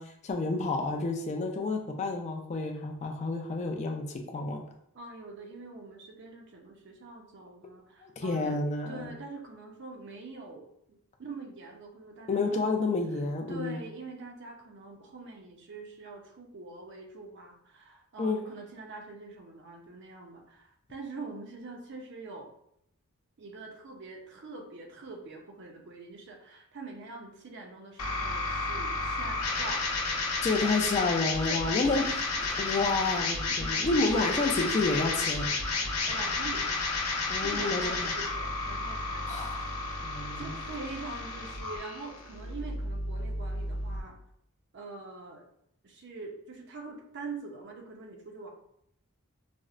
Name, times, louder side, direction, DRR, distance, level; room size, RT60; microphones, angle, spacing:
voice 1, 0.0-4.6 8.0-9.1 12.3-13.8 18.2-18.4 30.4-32.0 32.6-35.5 37.3-38.1 39.3-39.7 40.0-40.5, left 3 dB, 30° left, 3 dB, 0.3 m, -30 dB
voice 2, 4.9-8.6 8.9-12.6 13.1-22.5 23.4-29.9 31.4-32.1 33.5-33.9 34.2-34.8 36.1-36.7 37.4-39.3 39.9-44.1 44.7-45.4 45.8-48.5, right 3 dB, 55° right, 2 dB, 0.5 m, -44 dB
sound 1, 28.0-44.0, left 3 dB, 75° left, 0.6 m, -32 dB
4.2 x 2.0 x 2.4 m, 0.74 s
head